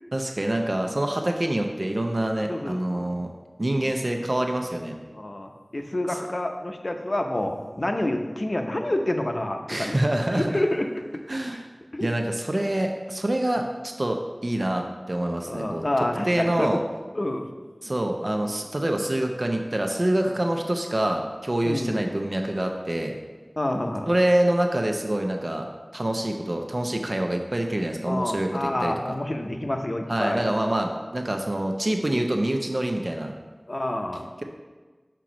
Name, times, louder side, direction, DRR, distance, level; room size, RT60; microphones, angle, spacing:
voice 1, 0.1-3.3 3.6-5.0 9.7-10.6 11.3-11.6 12.0-15.8 16.3-16.8 17.8-23.2 24.1-28.5 28.8-28.9 30.1-33.3, right 1 dB, 55° right, 3 dB, 0.6 m, -26 dB
voice 2, 2.4-3.1 3.6-4.0 5.1-10.0 10.3-10.9 11.9-12.1 15.4-16.8 17.1-17.5 21.6-22.0 23.6-24.1 28.1-30.5 33.7-34.3, left 1 dB, 60° left, 4 dB, 0.6 m, -28 dB
6.1 x 4.5 x 5.1 m, 1.4 s
wide cardioid pair, 45°, 0 cm